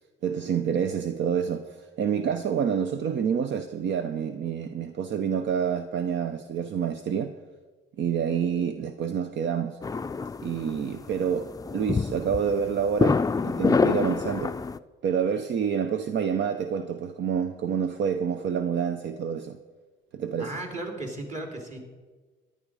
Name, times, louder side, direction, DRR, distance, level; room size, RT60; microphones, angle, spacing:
voice 1, 0.2-7.3 8.0-9.8 10.4-14.5 15.0-19.6 20.1-20.5, right 7 dB, 65° right, 0.7 m, -28 dB
sound 1, 9.8-14.8, left 4 dB, 20° left, 0.4 m, -27 dB
voice 2, 20.4-21.8, right 2 dB, 35° right, 3.3 m, -35 dB
14.5 x 11.0 x 4.9 m
cardioid pair, 90°, 20 cm